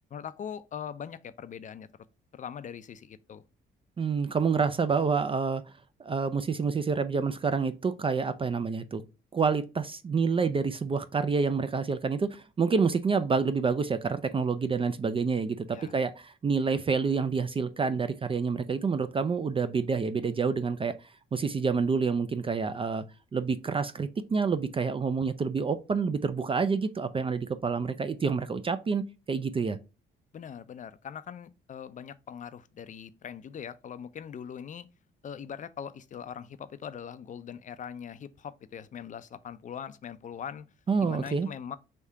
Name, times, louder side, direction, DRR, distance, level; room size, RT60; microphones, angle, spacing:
voice 1, 0.0-1.9 2.3-3.4 15.7-15.9 30.3-34.9 35.2-40.7 41.0-41.8, left 8 dB, 40° left, 0.4 m, -41 dB
voice 2, 4.0-5.6 6.0-9.0 9.3-20.9 21.3-23.0 23.3-29.8 40.9-41.5, right 5 dB, 25° right, 0.4 m, -28 dB
3.5 x 2.7 x 4.6 m
cardioid pair, 90°, 20 cm